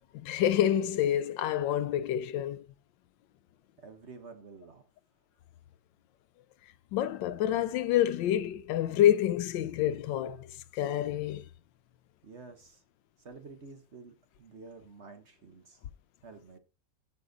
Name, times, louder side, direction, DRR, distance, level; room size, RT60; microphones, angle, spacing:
voice 1, 0.2-2.6 6.9-11.4, left 11 dB, 80° left, 1.3 m, -28 dB
voice 2, 3.8-4.8 12.2-12.8 13.2-15.8 16.2-16.6, right 4 dB, 40° right, 1.2 m, -50 dB
13.5 x 5.3 x 3.9 m
omnidirectional pair, 2.0 m